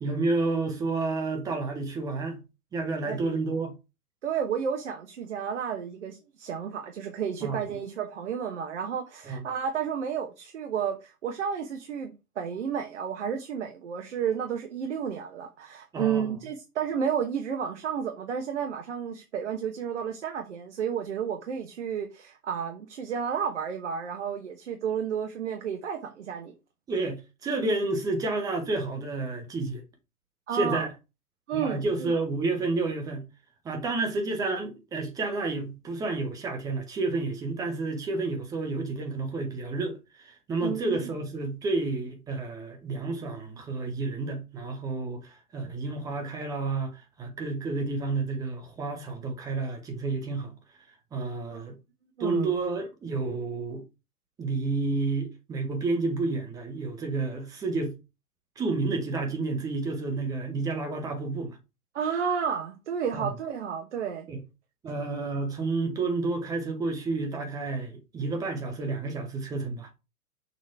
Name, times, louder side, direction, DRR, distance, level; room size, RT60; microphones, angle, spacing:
voice 1, 0.0-2.4 2.7-3.7 7.4-7.6 9.3-9.4 15.9-16.3 26.9-29.8 30.5-30.9 31.5-33.3 33.6-50.5 51.1-51.8 52.2-53.8 54.4-57.9 58.6-61.6 63.1-63.3 64.3-64.4 64.8-69.9, right 3 dB, 10° right, 0.8 m, -30 dB
voice 2, 3.0-3.4 4.2-26.5 30.5-30.9 31.5-32.1 40.6-41.1 51.5-51.6 52.2-52.5 61.9-64.3, right 7 dB, 50° right, 1.1 m, -32 dB
6.5 x 3.0 x 5.4 m
figure-of-eight pair, 120°, 45 cm